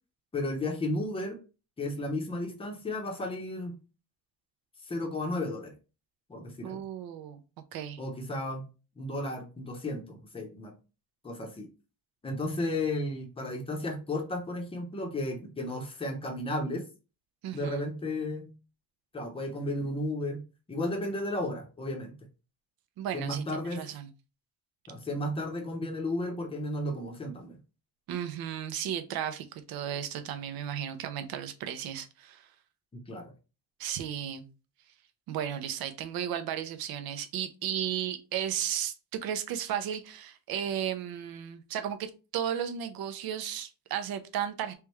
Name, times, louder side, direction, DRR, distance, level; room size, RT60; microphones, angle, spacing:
voice 1, 0.3-1.4 1.8-3.8 4.9-5.7 6.3-6.8 8.0-8.6 9.0-10.7 11.2-11.7 12.2-16.9 17.5-18.5 19.1-20.4 20.7-22.1 23.1-23.9 24.9-27.6 33.1-33.2, left 1 dB, 15° left, 3 dB, 0.7 m, -33 dB
voice 2, 6.6-7.4 7.7-8.0 17.4-17.8 23.0-24.1 28.1-32.5 33.8-34.5 35.3-38.9 39.2-44.7, right 9 dB, 65° right, 10 dB, 0.7 m, -34 dB
3.4 x 3.3 x 3.1 m, 0.32 s
cardioid pair, 165°, 40 cm